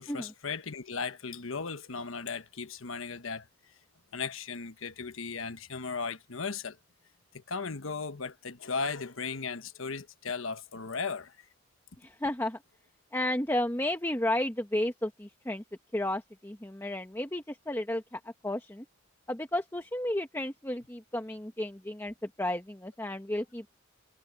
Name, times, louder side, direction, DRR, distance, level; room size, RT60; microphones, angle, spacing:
voice 1, 0.0-3.5 4.1-6.8 7.3-11.4, left 5 dB, 70° left, 1.2 m, -36 dB
voice 2, 12.0-12.6 13.1-15.6 15.9-18.8 19.3-23.8, left 1 dB, 10° left, 1.3 m, -33 dB
head